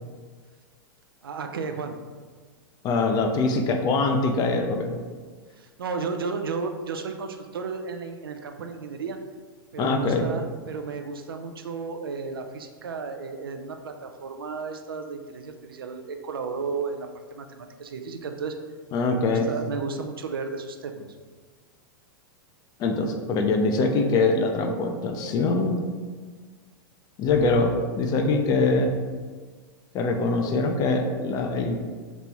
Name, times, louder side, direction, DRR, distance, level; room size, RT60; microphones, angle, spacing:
voice 1, 1.2-2.1 5.6-9.2 9.7-18.6 19.3-21.0, right 4 dB, 80° right, 5 dB, 0.4 m, -33 dB
voice 2, 2.8-5.0 9.8-10.3 18.9-19.5 22.8-25.8 27.2-28.9 29.9-31.8, left 3 dB, 35° left, 4 dB, 0.4 m, -23 dB
3.0 x 2.8 x 3.4 m, 1.5 s
figure-of-eight pair, 100°, 12 cm